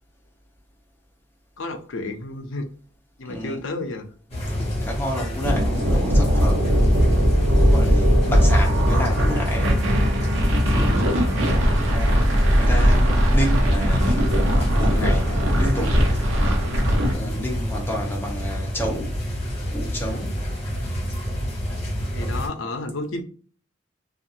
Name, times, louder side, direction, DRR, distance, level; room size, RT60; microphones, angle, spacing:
voice 1, 1.6-2.7 3.2-4.1 10.7-11.4 17.0-17.5 22.1-23.2, left 2 dB, 75° left, 0.5 m, -32 dB
voice 2, 3.3-3.6 4.5-6.9 7.5-9.9 11.9-16.0 17.1-19.2 19.7-20.4, equal, 10° left, 0.7 m, -30 dB
sound 1, 4.3-22.5, equal, 30° left, 1.1 m, -29 dB
sound 2, 5.4-17.1, equal, 85° right, 0.7 m, -19 dB
2.5 x 2.4 x 2.7 m
head